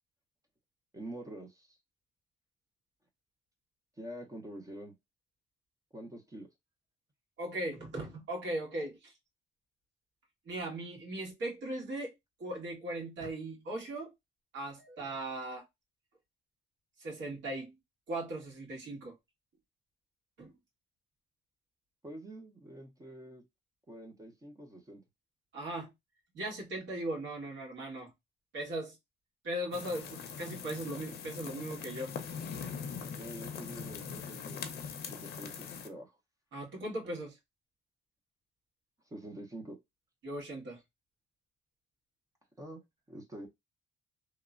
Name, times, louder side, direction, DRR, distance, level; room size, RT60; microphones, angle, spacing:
voice 1, 0.9-1.8 4.0-4.9 5.9-6.5 22.0-23.4 23.9-25.0 33.2-36.2 39.0-39.8 42.6-43.5, right 1 dB, 15° right, 0.6 m, -46 dB
voice 2, 7.4-9.1 10.5-12.1 12.4-14.1 14.5-15.6 17.0-17.7 18.1-19.1 20.4-20.5 25.5-25.9 26.3-28.1 28.5-28.9 29.4-32.2 36.5-37.4 40.2-40.8, right 1 dB, 70° right, 1.5 m, -38 dB
sound 1, 29.7-35.9, left 6 dB, 55° left, 0.6 m, -42 dB
2.9 x 2.1 x 2.3 m
cardioid pair, 150°, 20 cm